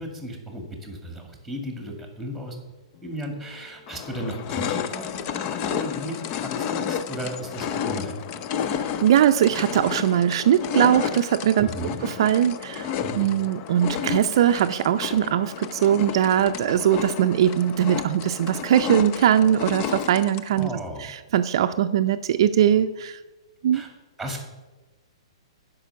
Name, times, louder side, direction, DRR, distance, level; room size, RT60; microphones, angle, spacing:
voice 1, 0.0-2.6 3.0-8.4 11.6-12.0 13.0-13.2 20.6-21.1 23.7-23.9 24.2-24.5, right 1 dB, ahead, 3 dB, 2.1 m, -35 dB
sound 1, 3.2-3.3 3.9-20.7, left 8 dB, 35° left, 0.5 m, -31 dB
voice 2, 8.7-11.7 12.0-23.2 23.6-23.8, right 10 dB, 55° right, 8 dB, 0.5 m, -21 dB
10.0 x 5.4 x 6.9 m, 1.2 s
hypercardioid pair, 145°, 3 cm